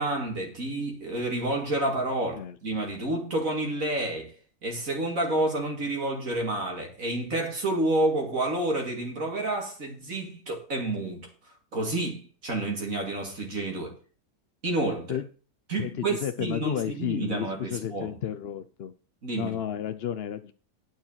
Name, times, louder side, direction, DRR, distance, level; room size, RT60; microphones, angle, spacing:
voice 1, 0.0-4.3 4.6-13.9 14.6-15.2 15.7-18.1 19.2-19.6, right 2 dB, 50° right, 2.8 m, -29 dB
voice 2, 15.8-18.9 19.3-20.5, left 10 dB, 70° left, 0.5 m, -32 dB
9.7 x 6.2 x 7.4 m
omnidirectional pair, 1.8 m